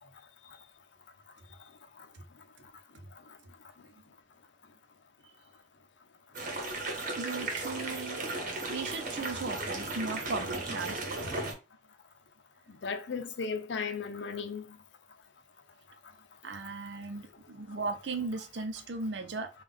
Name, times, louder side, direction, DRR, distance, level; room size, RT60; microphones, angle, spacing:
sound 1, 6.3-11.5, right 2 dB, 50° right, 1.0 m, -35 dB
voice 1, 7.2-11.4 16.4-19.5, right 3 dB, 75° right, 0.6 m, -37 dB
voice 2, 12.7-14.8, left 5 dB, 90° left, 0.6 m, -35 dB
3.6 x 2.4 x 3.4 m
head